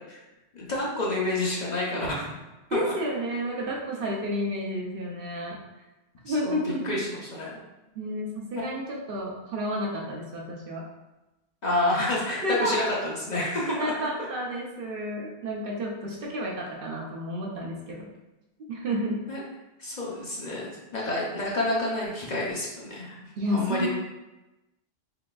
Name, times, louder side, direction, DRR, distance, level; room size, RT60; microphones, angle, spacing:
voice 1, 0.5-2.3 2.8-2.9 6.3-6.6 6.8-7.6 8.5-8.6 11.6-14.1 19.3-19.4 19.8-23.2 23.5-23.9, left 2 dB, 45° left, -5 dB, 0.7 m, -29 dB
voice 2, 2.7-5.6 6.2-7.0 8.0-10.8 12.4-12.8 13.7-18.1 18.7-19.2 23.4-23.9, equal, 60° right, -2 dB, 0.8 m, -31 dB
3.9 x 3.3 x 2.2 m, 1.0 s
omnidirectional pair, 1.1 m